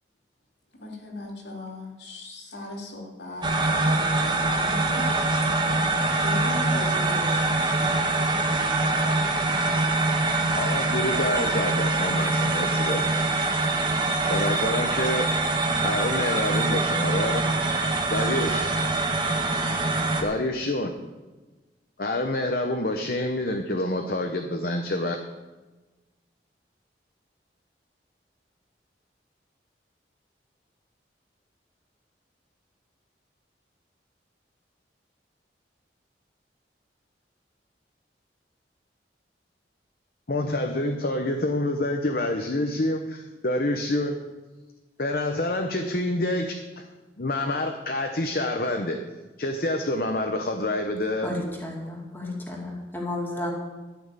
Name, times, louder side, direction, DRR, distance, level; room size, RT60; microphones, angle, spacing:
voice 1, 0.8-5.1 6.1-8.1, left 2 dB, 80° left, -1 dB, 3.1 m, -38 dB
sound 1, 3.4-20.2, right 2 dB, 25° right, 1.3 m, -24 dB
voice 2, 10.6-13.2 14.3-15.3 15.8-17.4 18.1-18.7 20.2-20.9 22.0-25.2 40.3-44.2 45.0-46.8 47.2-49.0 49.4-51.3, left 1 dB, 55° left, 4 dB, 0.9 m, -27 dB
voice 3, 51.2-53.5, left 2 dB, 10° left, -1 dB, 2.2 m, -32 dB
13.0 x 6.2 x 9.0 m, 1.2 s
head